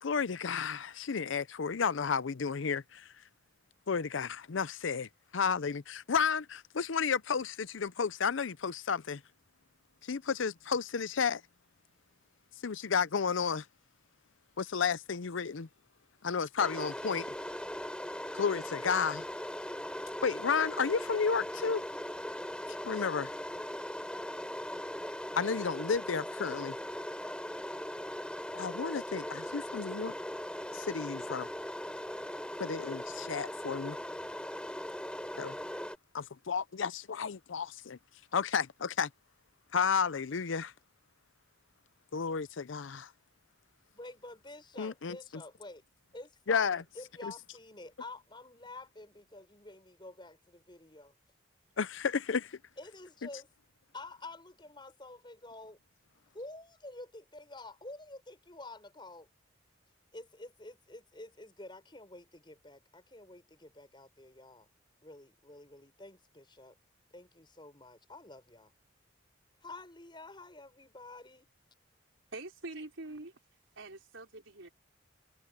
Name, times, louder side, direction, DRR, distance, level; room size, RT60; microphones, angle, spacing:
voice 1, 0.0-3.1 3.9-9.2 10.1-11.4 12.6-13.6 14.6-15.7 16.2-17.3 18.4-19.2 20.2-21.8 22.8-23.3 25.3-26.8 28.5-30.1 30.7-31.5 32.6-34.0 35.4-35.6 36.1-38.0 38.3-39.1 39.7-40.7 42.1-43.1 44.8-45.2 46.5-46.8 47.2-47.3 51.8-52.5, left 6 dB, 80° left, 0.6 m, -32 dB
sound 1, 16.6-36.0, left 1 dB, 5° left, 3.4 m, -39 dB
voice 2, 43.9-45.8 46.1-51.1 52.8-53.5 53.9-55.8 56.3-59.3 60.1-64.7 65.0-66.7 67.1-68.7 69.6-71.5, left 2 dB, 25° left, 6.6 m, -49 dB
voice 3, 72.3-73.3 73.8-74.7, right 2 dB, 85° right, 4.4 m, -44 dB
head